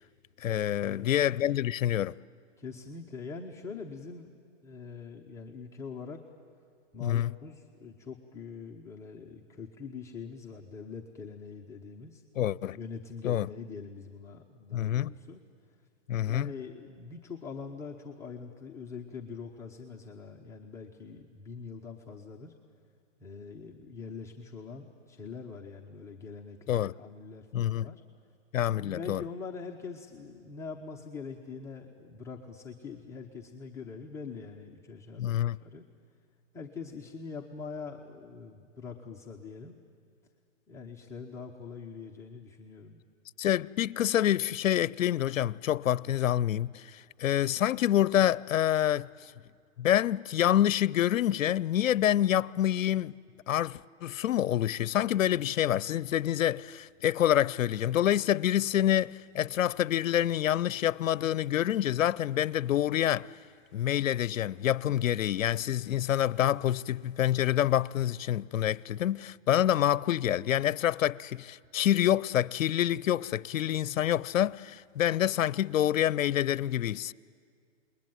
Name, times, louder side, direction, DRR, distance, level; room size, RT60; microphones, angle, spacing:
voice 1, 0.4-2.1 7.0-7.3 12.4-12.8 13.2-13.5 14.7-15.1 16.1-16.5 26.7-26.9 27.5-27.9 28.5-29.2 35.2-35.6 43.4-49.1 49.8-53.1 53.5-63.3 63.7-77.1, left 11 dB, 85° left, 0.6 m, -27 dB
voice 2, 2.6-4.3 4.6-6.2 6.9-12.2 12.7-15.4 16.2-22.5 23.2-28.0 28.8-35.9 36.5-39.8 40.7-43.0, left 5 dB, 5° left, 0.8 m, -43 dB
28.5 x 21.0 x 9.2 m
hypercardioid pair, 150°, 38 cm